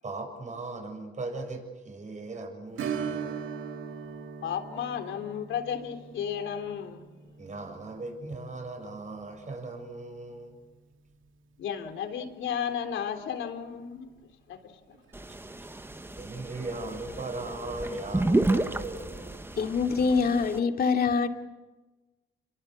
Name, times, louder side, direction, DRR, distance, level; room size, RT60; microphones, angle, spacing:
voice 1, 0.0-3.5 7.4-10.6 16.2-19.4, right 2 dB, 35° right, 7.4 m, -38 dB
Strum, 2.8-12.0 12.3-12.4 14.9-15.1 15.5-15.6, right 6 dB, 80° right, 2.4 m, -41 dB
voice 2, 4.4-7.1 11.6-14.1 14.5-15.0, left 8 dB, 75° left, 3.6 m, -34 dB
sound 1, 15.1-20.6, right 2 dB, 10° right, 1.2 m, -31 dB
voice 3, 19.6-21.3, left 5 dB, 50° left, 2.6 m, -24 dB
28.5 x 23.0 x 8.5 m
cardioid pair, 90°, 20 cm